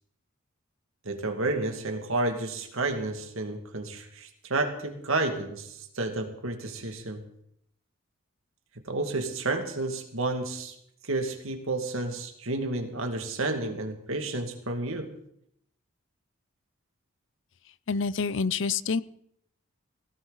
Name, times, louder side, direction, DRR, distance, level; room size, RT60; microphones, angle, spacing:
voice 1, 1.0-7.2 8.8-10.7 11.0-15.1, right 2 dB, 75° right, 5 dB, 2.3 m, -31 dB
voice 2, 17.9-19.0, left 5 dB, 60° left, 17 dB, 0.5 m, -27 dB
17.5 x 17.0 x 4.1 m, 0.71 s
head